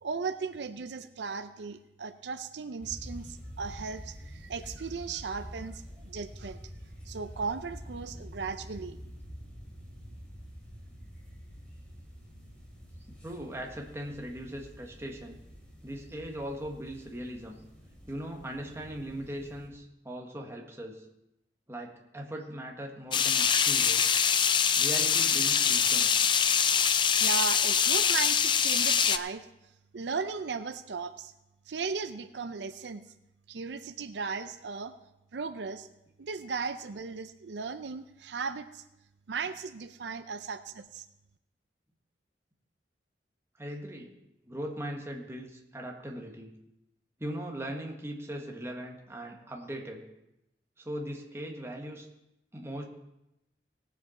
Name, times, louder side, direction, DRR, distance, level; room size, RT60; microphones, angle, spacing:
voice 1, 0.0-6.6 7.1-9.0 27.2-29.5 29.9-31.3 31.7-33.0 33.5-34.9 35.3-35.9 36.2-38.8 39.3-41.1, right 5 dB, 80° right, 10 dB, 0.5 m, -36 dB
sound 1, 2.8-19.7, equal, 5° left, 2.8 m, -47 dB
voice 2, 13.1-15.4 15.8-17.6 18.1-21.0 21.7-24.1 24.8-26.1 34.1-34.2 43.6-44.1 44.4-46.5 47.2-50.1 50.8-52.1 52.5-52.8, right 1 dB, 15° right, 1 dB, 1.5 m, -39 dB
sound 2, 23.1-29.2, left 7 dB, 25° left, 0.4 m, -24 dB
18.5 x 7.5 x 4.4 m, 0.89 s
head